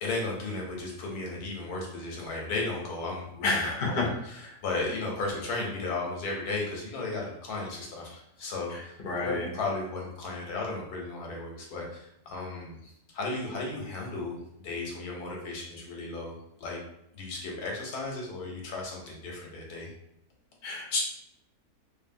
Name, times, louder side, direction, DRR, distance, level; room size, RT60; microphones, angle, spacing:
voice 1, 0.0-14.4 14.6-16.3 16.6-16.8 17.1-19.9, left 3 dB, 85° left, -1 dB, 1.3 m, -35 dB
voice 2, 3.4-4.1 9.0-9.5 20.6-21.0, left 3 dB, 50° left, -2 dB, 0.6 m, -28 dB
2.7 x 2.5 x 2.6 m, 0.78 s
omnidirectional pair, 1.6 m